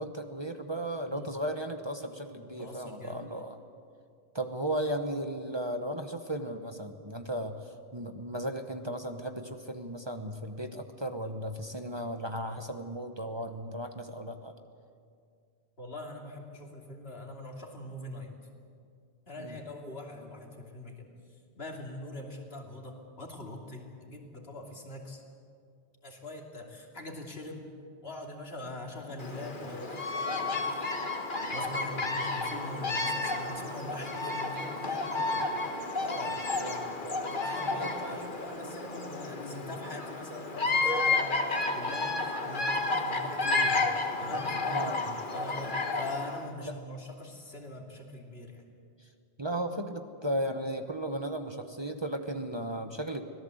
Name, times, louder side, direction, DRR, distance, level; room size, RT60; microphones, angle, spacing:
voice 1, 0.0-3.6 4.3-7.5 7.9-14.5 19.4-19.5 35.2-35.3 36.6-37.9 44.7-45.1 46.6-46.7 49.4-53.2, right 1 dB, 25° right, 6 dB, 1.1 m, -35 dB
voice 2, 2.6-3.4 15.8-18.3 19.3-21.1 21.5-25.2 26.0-27.7 28.0-35.2 36.0-36.4 37.3-44.9 45.3-48.6, left 2 dB, 70° left, 1 dB, 3.1 m, -43 dB
Bird vocalization bird call bird song, 29.2-46.4, left 3 dB, 50° left, 1.8 m, -31 dB
25.0 x 18.0 x 7.9 m, 2.3 s
omnidirectional pair, 1.1 m